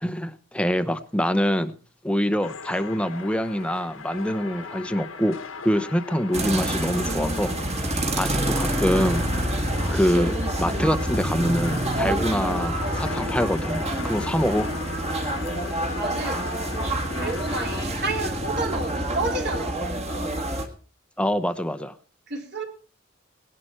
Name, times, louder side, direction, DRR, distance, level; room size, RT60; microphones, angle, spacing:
voice 1, 0.0-1.7 2.0-7.5 7.8-9.2 9.9-14.7 21.2-21.9, equal, 5° left, 12 dB, 0.8 m, -25 dB
sound 1, 2.4-17.9, left 5 dB, 85° left, 1.6 m, -38 dB
sound 2, 6.3-20.7, right 1 dB, 35° right, 2.1 m, -27 dB
voice 2, 14.1-14.5 16.0-20.6 22.3-22.6, right 2 dB, 55° right, 2 dB, 3.4 m, -32 dB
19.0 x 11.0 x 4.5 m, 0.39 s
head